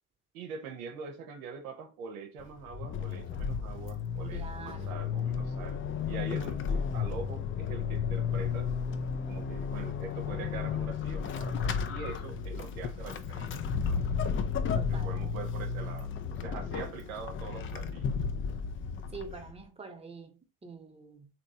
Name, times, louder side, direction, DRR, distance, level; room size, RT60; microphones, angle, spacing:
voice 1, 0.3-8.7 9.3-14.0 14.9-18.2 19.3-19.4, right 5 dB, 85° right, 0.7 m, -43 dB
Vehicle / Accelerating revving vroom / Squeak, 2.4-19.6, left 6 dB, 30° left, 0.4 m, -33 dB
voice 2, 4.3-5.0 14.7-15.2 19.1-21.3, right 4 dB, 15° right, 0.8 m, -46 dB
3.0 x 2.8 x 2.6 m
hypercardioid pair, 60°, 40 cm